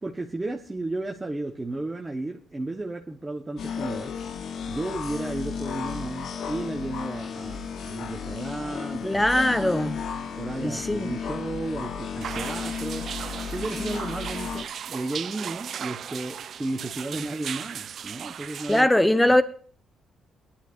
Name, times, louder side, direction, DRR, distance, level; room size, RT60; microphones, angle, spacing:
voice 1, 0.0-4.1 4.7-9.9 10.4-13.1 13.5-18.9 19.3-19.4, right 2 dB, 20° right, 1.2 m, -33 dB
sound 1, 3.6-14.6, left 6 dB, 75° left, 1.1 m, -34 dB
voice 2, 9.0-9.9 10.6-11.1 18.7-19.4, left 1 dB, 10° left, 1.0 m, -21 dB
sound 2, 12.2-18.8, right 8 dB, 60° right, 0.4 m, -36 dB
19.0 x 11.5 x 2.6 m
cardioid pair, 95°, 0 cm